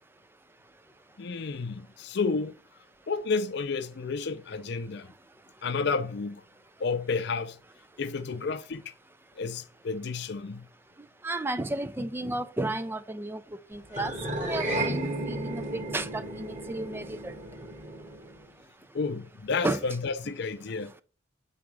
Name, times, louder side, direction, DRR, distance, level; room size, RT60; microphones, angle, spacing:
voice 1, 1.2-2.5 3.1-5.1 5.6-6.4 6.8-7.6 8.0-8.9 9.4-10.7 18.9-20.9, left 4 dB, 60° left, 0.5 m, -31 dB
voice 2, 11.2-13.4 13.7-14.1 14.4-17.3 19.6-19.8, right 2 dB, 10° right, 0.3 m, -33 dB
sound 1, 13.9-18.5, right 1 dB, 40° right, 1.5 m, -33 dB
7.1 x 4.8 x 3.2 m
head